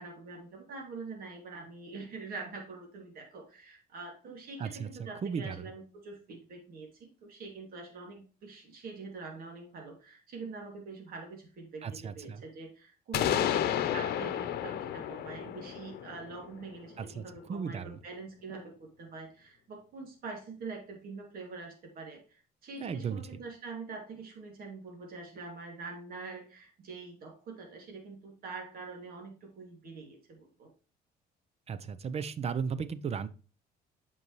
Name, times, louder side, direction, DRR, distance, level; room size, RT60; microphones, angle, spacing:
voice 1, 0.0-30.7, right 4 dB, 60° right, 2 dB, 2.6 m, -45 dB
voice 2, 4.6-5.7 11.8-12.4 17.0-17.2 17.5-18.0 22.8-23.3 31.7-33.3, right 6 dB, 40° right, 16 dB, 0.6 m, -35 dB
sound 1, 13.1-16.9, left 11 dB, 65° left, 0.8 m, -32 dB
8.0 x 5.4 x 3.1 m, 0.36 s
cardioid pair, 110°, 17 cm